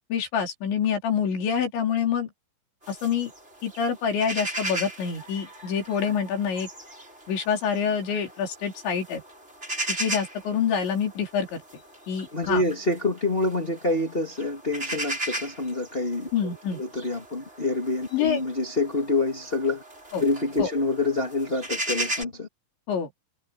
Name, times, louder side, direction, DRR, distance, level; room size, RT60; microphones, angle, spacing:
voice 1, 0.1-2.3 2.9-3.3 3.6-6.7 7.3-9.2 10.0-11.6 12.1-12.6 16.3-16.8 18.1-18.4 20.1-20.2 20.6-20.7 22.9-23.1, left 7 dB, 70° left, 6.3 m, -26 dB
sound 1, 2.8-22.2, right 1 dB, 15° right, 5.5 m, -37 dB
voice 2, 12.3-19.8 20.2-22.5, left 2 dB, 40° left, 0.7 m, -27 dB
omnidirectional pair, 5.5 m